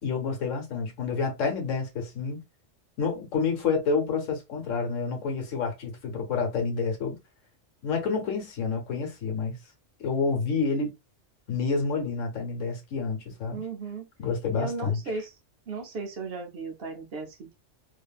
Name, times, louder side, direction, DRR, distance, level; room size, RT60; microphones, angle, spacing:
voice 1, 0.0-2.4 3.0-7.2 7.8-9.6 10.0-10.9 11.5-13.6 14.2-15.0, left 5 dB, 90° left, 1.3 m, -28 dB
voice 2, 13.5-14.1 14.5-15.3 15.7-17.5, right 3 dB, 60° right, 0.8 m, -36 dB
2.7 x 2.5 x 2.3 m
omnidirectional pair, 1.3 m